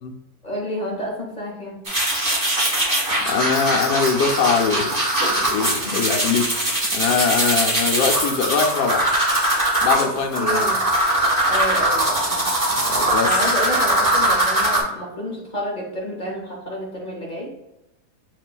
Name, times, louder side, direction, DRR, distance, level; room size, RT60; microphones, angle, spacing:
voice 1, 0.4-1.8 10.0-10.8 11.4-12.5 13.2-17.5, equal, 45° left, -2 dB, 0.6 m, -29 dB
sound 1, 1.9-14.8, right 1 dB, 25° right, 1.3 m, -21 dB
voice 2, 3.2-4.9 5.4-6.6 6.9-9.1 9.8-10.7 12.7-13.4, left 6 dB, 85° left, 3 dB, 1.2 m, -22 dB
7.1 x 2.4 x 2.2 m, 0.94 s
omnidirectional pair, 1.7 m